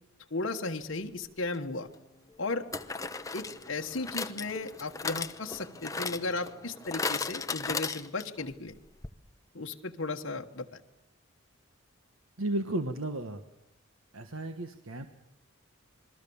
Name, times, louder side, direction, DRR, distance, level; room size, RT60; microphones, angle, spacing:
voice 1, 0.3-1.9 2.4-2.7 3.3-8.8 9.5-10.8, left 3 dB, 65° left, 2 dB, 1.4 m, -35 dB
sound 1, 1.4-1.6 2.7-8.5 8.7-8.8 9.0-9.1, left 4 dB, 15° left, 0.9 m, -36 dB
voice 2, 12.4-13.4 14.1-15.1, right 1 dB, 80° right, 8 dB, 1.4 m, -33 dB
28.0 x 21.5 x 7.1 m, 0.81 s
head